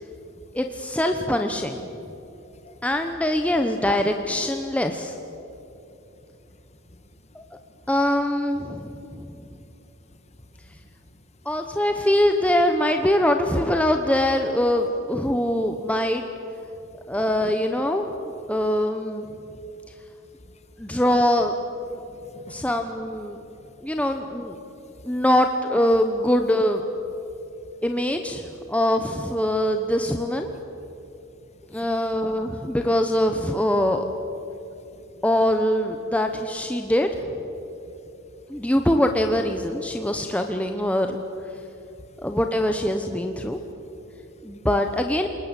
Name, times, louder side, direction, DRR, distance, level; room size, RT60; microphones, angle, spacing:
voice 1, 0.0-0.6 2.0-2.9 5.5-6.0 6.3-7.8 8.8-11.5 16.7-17.1 18.6-18.7 19.4-19.9 20.2-21.0 21.9-22.7 23.4-24.0 24.7-25.2 27.2-27.8 30.9-32.0 32.7-32.8 34.5-35.2 36.8-36.9 37.6-38.7 40.0-40.1 41.5-42.3 43.4-44.7, left 1 dB, 35° left, 7 dB, 2.0 m, -53 dB
voice 2, 0.5-1.9 2.8-5.2 7.3-7.4 7.9-9.3 11.4-16.2 17.1-18.1 18.5-19.3 20.8-21.5 22.5-23.4 23.8-24.6 25.0-26.8 27.8-30.5 31.7-34.0 35.2-37.1 38.5-41.2 42.2-43.6 44.4-45.3, left 1 dB, 5° left, 5 dB, 1.0 m, -23 dB
28.5 x 20.0 x 8.3 m, 3.0 s
head